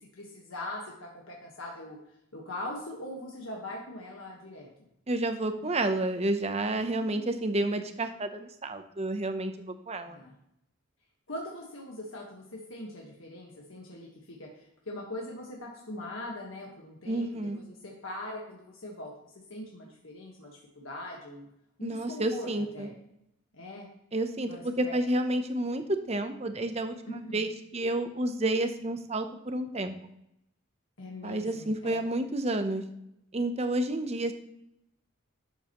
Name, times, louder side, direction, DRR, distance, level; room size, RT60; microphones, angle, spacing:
voice 1, 0.0-2.0 2.3-4.7 6.8-7.5 10.1-10.3 11.3-19.1 19.5-21.5 21.8-22.9 23.5-23.9 24.4-25.0 27.1-27.4 31.0-32.0, left 1 dB, 80° left, -2 dB, 1.5 m, -41 dB
voice 2, 5.1-10.2 17.1-17.6 21.8-22.9 24.1-29.9 31.2-32.8 33.3-34.3, right 1 dB, 30° right, 8 dB, 0.8 m, -30 dB
12.0 x 7.4 x 3.1 m, 0.79 s
head